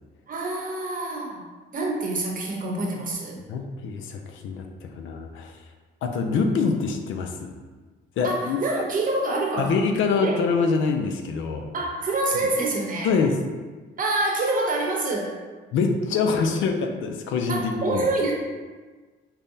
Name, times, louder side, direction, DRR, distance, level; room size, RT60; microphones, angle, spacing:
voice 1, 0.3-1.4 1.7-3.4 8.2-9.8 10.2-10.4 11.7-13.1 14.0-15.4 17.5-18.3, right 2 dB, 45° right, -1 dB, 0.8 m, -26 dB
voice 2, 3.5-5.5 6.0-7.5 8.2-8.6 9.6-11.7 13.0-13.4 15.7-18.0, left 4 dB, 75° left, 4 dB, 0.5 m, -25 dB
5.3 x 2.1 x 2.7 m, 1.4 s
cardioid pair, 90°, 20 cm